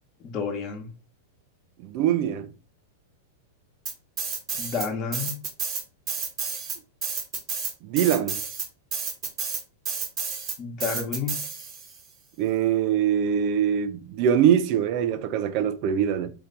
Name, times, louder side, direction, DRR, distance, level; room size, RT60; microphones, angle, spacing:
voice 1, 0.2-0.9 4.6-5.4 10.6-11.4, left 6 dB, 35° left, 1.1 m, -30 dB
voice 2, 1.8-2.5 7.9-8.4 12.4-16.3, right 9 dB, 50° right, 0.5 m, -23 dB
sound 1, 3.9-4.9 5.1-12.0, right 5 dB, 35° right, 1.1 m, -31 dB
3.2 x 2.9 x 4.0 m
hypercardioid pair, 125°, 0 cm